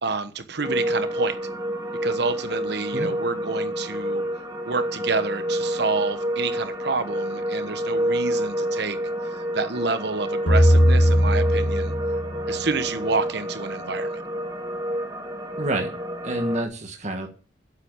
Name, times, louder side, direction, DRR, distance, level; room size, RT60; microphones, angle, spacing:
voice 1, 0.0-1.4 2.0-4.2 4.6-9.0 9.2-11.9 12.5-14.2, right 4 dB, 65° right, 11 dB, 1.1 m, -28 dB
sound 1, 0.6-16.6, equal, 20° right, 2.0 m, -28 dB
sound 2, 10.5-12.9, equal, 65° left, 2.5 m, -19 dB
voice 2, 15.6-15.9 16.2-17.3, right 1 dB, 40° right, 3 dB, 1.5 m, -28 dB
8.4 x 7.6 x 8.8 m, 0.39 s
head